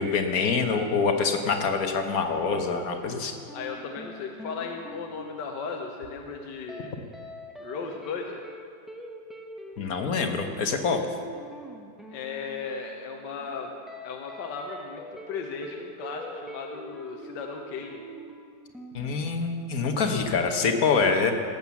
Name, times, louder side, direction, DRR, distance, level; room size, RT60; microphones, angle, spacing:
voice 1, 0.0-3.3 9.8-11.0 18.9-21.3, left 5 dB, 55° left, 5 dB, 1.4 m, -25 dB
sound 1, 0.7-6.3 6.7-6.9 7.1-20.0, equal, ahead, 0.7 m, -44 dB
voice 2, 3.5-6.9 7.6-8.4 12.1-13.7 14.0-15.0 15.3-18.0, left 5 dB, 70° left, 2 dB, 1.6 m, -36 dB
18.0 x 8.0 x 7.0 m, 2.4 s
omnidirectional pair, 2.0 m